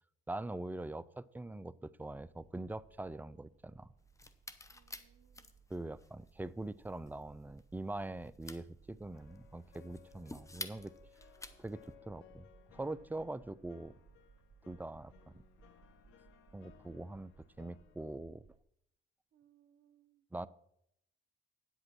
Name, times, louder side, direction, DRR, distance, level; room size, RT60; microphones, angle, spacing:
voice 1, 0.3-3.9 5.7-10.9 11.6-13.9 14.6-15.3 16.5-17.3 17.6-18.5 20.3-20.5, right 2 dB, 10° right, 17 dB, 0.4 m, -43 dB
sound 1, 2.0-18.6, right 6 dB, 35° right, 1.8 m, -64 dB
sound 2, 4.0-11.9, left 2 dB, 15° left, 0.8 m, -51 dB
voice 2, 4.7-5.5 19.3-20.2, right 11 dB, 75° right, 10 dB, 0.9 m, -69 dB
sound 3, 9.1-18.0, left 11 dB, 90° left, 0.8 m, -63 dB
9.4 x 8.0 x 6.0 m, 0.75 s
cardioid pair, 90°, 20 cm